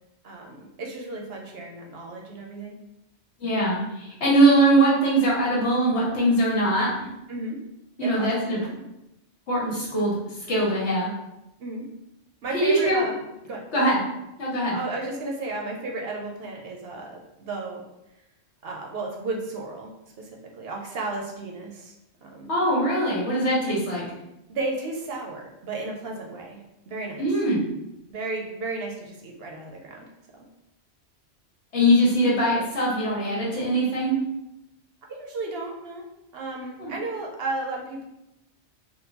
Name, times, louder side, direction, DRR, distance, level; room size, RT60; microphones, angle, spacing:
voice 1, 0.2-2.8 7.3-7.6 8.0-8.7 11.6-11.8 12.4-13.2 13.4-13.6 14.7-17.8 18.6-20.3 20.6-21.9 22.2-22.5 24.5-26.6 26.9-27.3 28.1-30.1 35.1-36.0 36.3-38.0, right 2 dB, 65° right, 0 dB, 0.8 m, -33 dB
voice 2, 3.4-7.1 8.0-8.6 9.5-10.2 10.5-11.1 12.5-13.0 13.7-14.0 14.4-14.8 22.5-24.1 27.2-27.6 31.7-34.2 36.8-36.9, right 1 dB, 75° left, -5 dB, 1.4 m, -22 dB
3.6 x 2.3 x 2.8 m, 0.88 s
omnidirectional pair, 1.2 m